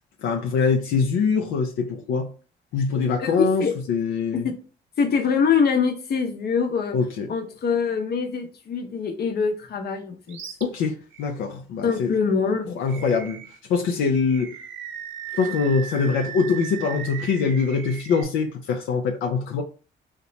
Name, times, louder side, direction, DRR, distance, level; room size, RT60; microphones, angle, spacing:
voice 1, 0.2-2.3 2.7-4.5 6.9-7.3 10.6-12.1 12.8-13.4 13.7-14.5 15.3-19.6, left 5 dB, 85° left, 0.5 m, -23 dB
voice 2, 3.2-3.7 4.4-4.5 5.0-7.0 7.3-10.4 11.8-12.7, left 6 dB, 55° left, 0.7 m, -24 dB
Animal, 10.3-10.6 11.1-11.3 12.9-13.6 14.3-18.2, right 9 dB, 75° right, 0.5 m, -37 dB
2.9 x 2.1 x 3.9 m
cardioid pair, 90°, 20 cm